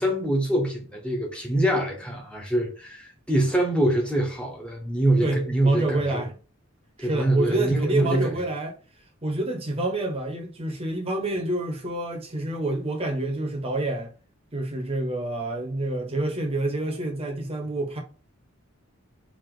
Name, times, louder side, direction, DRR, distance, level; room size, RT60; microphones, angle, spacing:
voice 1, 0.0-6.2 7.0-8.3, right 1 dB, 5° left, 1.1 m, -24 dB
voice 2, 5.2-6.3 7.0-8.8 9.2-14.1 14.5-18.0, right 1 dB, 25° right, 1.0 m, -28 dB
4.9 x 2.9 x 3.8 m
head